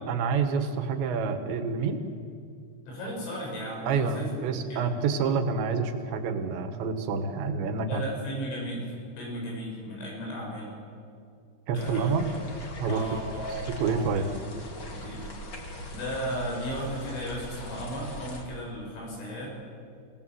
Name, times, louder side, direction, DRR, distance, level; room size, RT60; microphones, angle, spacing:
voice 1, 0.1-2.0 3.8-8.0 11.7-12.3 12.8-13.2 13.8-14.3, right 5 dB, 75° right, 7 dB, 3.7 m, -28 dB
voice 2, 2.9-4.9 7.9-8.9 9.2-10.7 11.7-12.3 12.9-14.3 14.9-15.3 15.9-19.5, equal, 85° left, -2 dB, 9.6 m, -35 dB
sound 1, 11.8-18.4, equal, 35° left, 2.2 m, -41 dB
27.0 x 18.0 x 7.8 m, 2.3 s
omnidirectional pair, 5.3 m